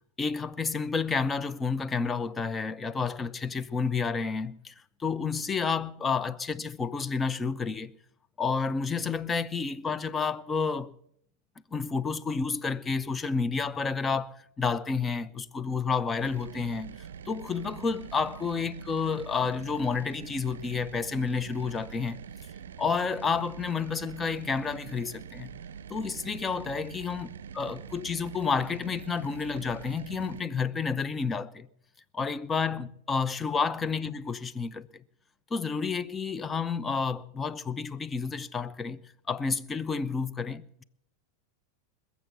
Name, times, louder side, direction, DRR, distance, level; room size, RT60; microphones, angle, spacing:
voice 1, 0.2-4.7 5.0-7.9 8.4-10.9 11.7-17.0 17.3-22.2 22.8-25.5 25.9-31.7 32.1-34.9 35.5-39.0 39.3-40.8, left 5 dB, 20° left, 0.7 m, -30 dB
sound 1, 16.2-30.4, right 7 dB, 80° right, 0.5 m, -44 dB
21.0 x 7.1 x 8.0 m
hypercardioid pair, 100°, 0 cm